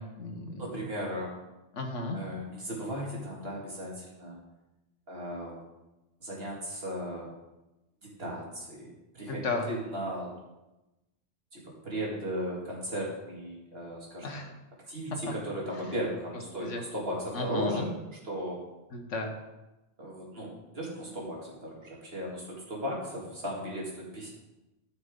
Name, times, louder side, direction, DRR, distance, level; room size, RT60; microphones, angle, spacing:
voice 1, 0.0-0.9 1.7-2.2 9.3-9.7 14.2-14.5 15.8-16.0 16.6-16.8 17.3-17.9 18.9-19.3, left 3 dB, 80° left, 3 dB, 1.6 m, -34 dB
voice 2, 0.6-1.3 2.1-4.4 5.1-5.6 6.2-7.3 8.0-10.3 11.5-14.3 14.9-17.9 18.2-18.6 20.0-24.3, equal, 55° right, -3 dB, 2.5 m, -36 dB
13.5 x 6.0 x 3.7 m, 1.0 s
omnidirectional pair, 1.2 m